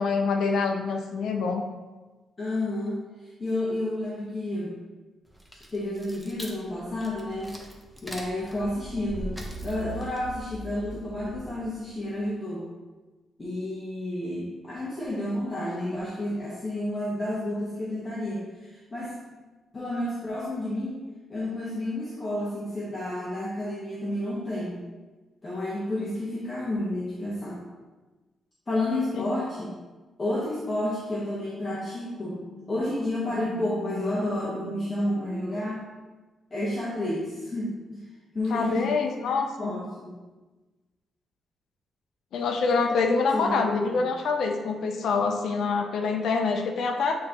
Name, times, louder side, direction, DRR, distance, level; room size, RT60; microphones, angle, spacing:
voice 1, 0.0-1.6 29.1-29.2 38.5-39.8 42.3-47.2, left 4 dB, 70° left, 3 dB, 0.5 m, -26 dB
voice 2, 2.4-3.0 3.4-4.7 5.7-7.6 8.0-9.3 9.6-12.6 13.4-19.1 19.7-21.0 21.3-24.8 25.4-27.6 28.7-29.7 30.2-35.8 36.5-38.0 38.3-40.1 43.3-44.0, left 1 dB, 25° left, -8 dB, 1.2 m, -30 dB
sound 1, 5.3-11.8, right 2 dB, ahead, 0.8 m, -41 dB
8.5 x 3.8 x 2.9 m, 1.2 s
cardioid pair, 115°, 0 cm